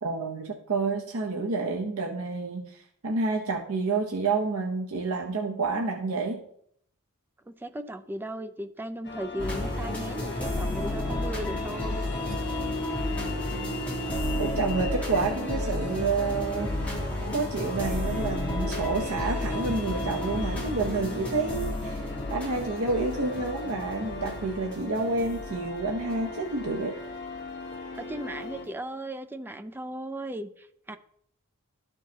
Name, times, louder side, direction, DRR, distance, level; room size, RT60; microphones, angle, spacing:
voice 1, 0.0-6.4 14.4-27.0, right 3 dB, 70° right, 1 dB, 0.8 m, -29 dB
voice 2, 7.5-12.0 28.0-31.0, right 1 dB, 10° right, 9 dB, 0.3 m, -36 dB
sound 1, 9.0-28.7, left 2 dB, 50° left, 1.1 m, -40 dB
sound 2, 9.4-27.1 27.7-28.0, left 1 dB, 5° left, 1.6 m, -33 dB
sound 3, 10.3-24.4, left 1 dB, 90° left, 1.1 m, -40 dB
12.5 x 4.6 x 2.8 m, 0.68 s
head